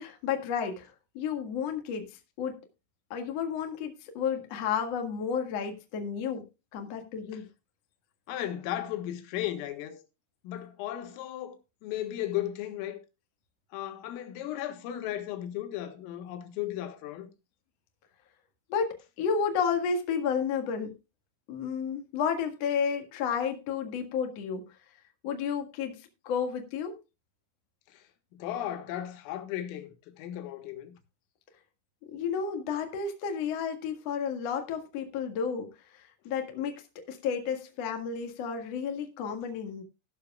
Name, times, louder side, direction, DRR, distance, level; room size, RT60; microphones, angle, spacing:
voice 1, 0.0-2.1 2.4-2.6 3.1-6.5 6.7-7.5 18.7-20.9 21.5-24.6 25.2-27.0 32.1-35.7 36.2-39.8, left 6 dB, 60° left, 1.7 m, -31 dB
voice 2, 8.3-10.0 10.4-11.6 11.8-13.0 13.7-17.3 27.9-28.0 28.3-30.9, left 12 dB, 85° left, 4.0 m, -35 dB
14.5 x 12.0 x 2.3 m
omnidirectional pair, 5.9 m